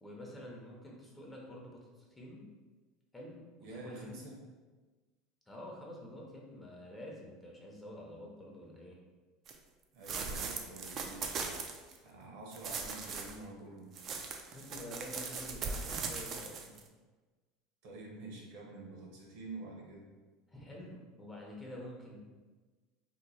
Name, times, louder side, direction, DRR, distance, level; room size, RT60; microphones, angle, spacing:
voice 1, 0.0-2.5 3.1-4.1 5.5-9.0 14.5-16.8 20.5-22.2, left 1 dB, 10° left, -3 dB, 0.7 m, -48 dB
voice 2, 3.6-4.4 9.9-11.5 12.0-13.9 17.8-20.1, right 2 dB, 75° right, -1 dB, 1.0 m, -48 dB
sound 1, 9.5-9.6 10.0-12.0 12.5-13.4 13.9-16.8, right 5 dB, 40° right, 0.4 m, -39 dB
2.8 x 2.2 x 4.0 m, 1.3 s
supercardioid pair, 120°, 0 cm